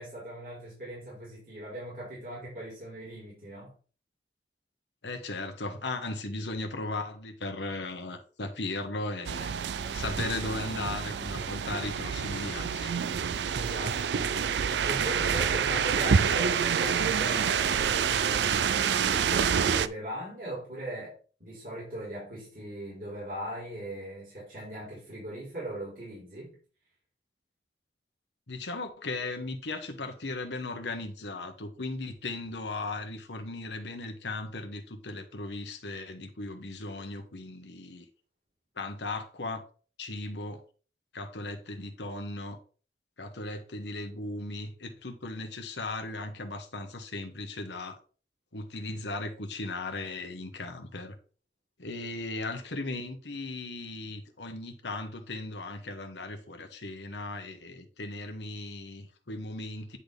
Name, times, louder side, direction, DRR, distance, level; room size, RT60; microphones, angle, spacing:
voice 1, 0.0-3.7 13.5-21.1 21.4-26.6, right 1 dB, 55° right, 4.1 m, -40 dB
voice 2, 5.0-9.5 9.9-12.9 28.5-38.1 38.8-39.6 40.0-40.6 41.1-42.6 43.2-48.0 48.5-51.2 51.8-60.0, left 2 dB, 90° left, 1.3 m, -37 dB
sound 1, 9.3-19.9, right 7 dB, 80° right, 0.4 m, -27 dB
9.9 x 4.1 x 3.5 m
head